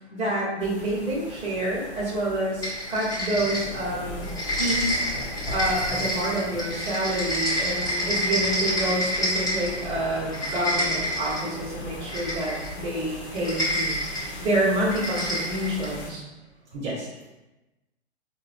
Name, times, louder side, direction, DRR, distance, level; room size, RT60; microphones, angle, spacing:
voice 1, 0.1-4.3 4.5-5.0 5.5-16.2, right 1 dB, 15° right, -9 dB, 1.1 m, -28 dB
sound 1, 0.6-16.1, left 1 dB, 50° left, 0.9 m, -38 dB
sound 2, 2.6-3.9 4.2-9.8 10.2-11.5 12.1-12.7 13.4-14.2 14.9-15.9, equal, 10° left, 0.9 m, -28 dB
voice 2, 16.7-17.1, right 2 dB, 55° right, -4 dB, 0.9 m, -37 dB
3.7 x 2.2 x 2.5 m, 1.0 s
hypercardioid pair, 125°, 34 cm